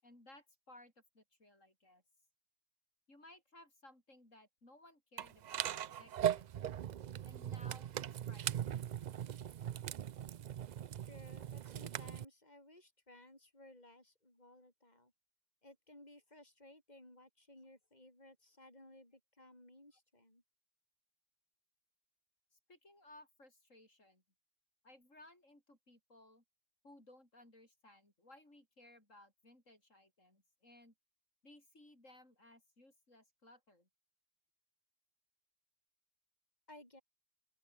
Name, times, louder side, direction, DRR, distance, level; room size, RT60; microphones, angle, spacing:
voice 1, 0.0-2.0 3.1-6.8 7.2-8.8 22.5-24.2 24.8-26.4 26.8-30.9 31.4-33.9, left 1 dB, 85° left, 8.4 m, -61 dB
sound 1, 5.2-12.2, right 10 dB, 70° right, 0.4 m, -40 dB
voice 2, 11.0-15.1 15.6-20.4 36.7-37.0, left 1 dB, 35° left, 6.6 m, -59 dB
open air
omnidirectional pair, 1.3 m